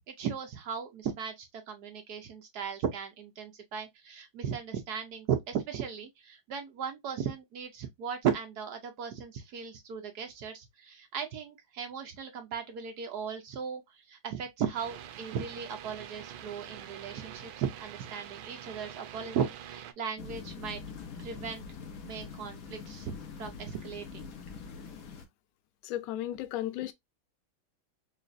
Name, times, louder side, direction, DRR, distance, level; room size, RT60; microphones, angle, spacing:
voice 1, 0.1-20.8 21.2-21.6 22.0-24.3, right 7 dB, 65° right, 1.1 m, -36 dB
sound 1, 14.7-19.9, right 10 dB, 80° right, 1.4 m, -45 dB
sound 2, 20.2-25.3, left 5 dB, 60° left, 1.0 m, -44 dB
voice 2, 25.8-26.9, left 13 dB, 90° left, 0.8 m, -34 dB
5.0 x 2.4 x 2.5 m
omnidirectional pair, 2.2 m